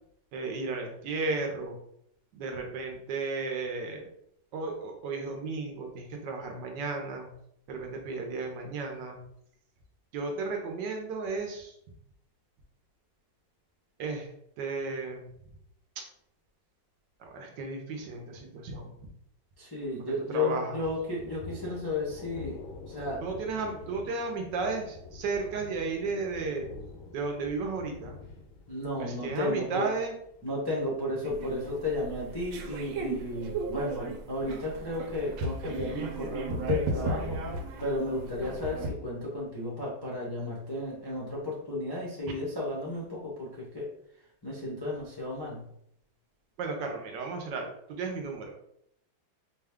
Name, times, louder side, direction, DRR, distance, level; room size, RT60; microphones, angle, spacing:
voice 1, 0.3-1.8 2.3-4.1 4.5-7.3 7.7-9.2 10.1-11.7 14.0-14.3 14.6-15.3 16.0-16.1 17.2-18.9 20.0-20.8 23.2-26.6 27.1-28.2 29.0-30.1 46.6-48.5, right 4 dB, 70° right, 3 dB, 1.2 m, -34 dB
voice 2, 19.6-22.6 22.9-23.2 28.7-29.9 30.4-43.9 44.4-45.6, left 2 dB, 30° left, -6 dB, 0.4 m, -33 dB
Thunder, 20.8-36.3, left 4 dB, 80° left, 1.4 m, -48 dB
sound 1, 31.2-38.9, right 2 dB, 90° right, 1.4 m, -35 dB
4.9 x 2.2 x 3.5 m, 0.74 s
omnidirectional pair, 2.1 m